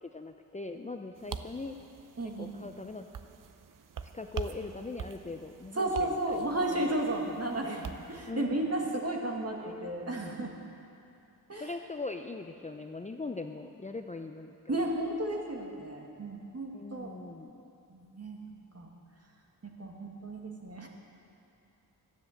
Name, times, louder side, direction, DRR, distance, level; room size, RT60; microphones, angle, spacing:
voice 1, 0.0-1.8 2.2-3.1 4.1-7.0 7.4-7.8 8.3-8.6 9.6-9.9 11.6-14.7 16.7-17.6, left 3 dB, 20° left, 5 dB, 0.6 m, -41 dB
sound 1, 1.1-8.3, right 7 dB, 55° right, 0.7 m, -45 dB
voice 2, 2.2-2.7 5.8-10.5 11.5-11.7 14.7-17.1 17.9-18.9 19.6-20.9, right 1 dB, 40° right, 0 dB, 2.1 m, -33 dB
13.0 x 9.8 x 7.3 m, 2.7 s
cardioid pair, 60°, 38 cm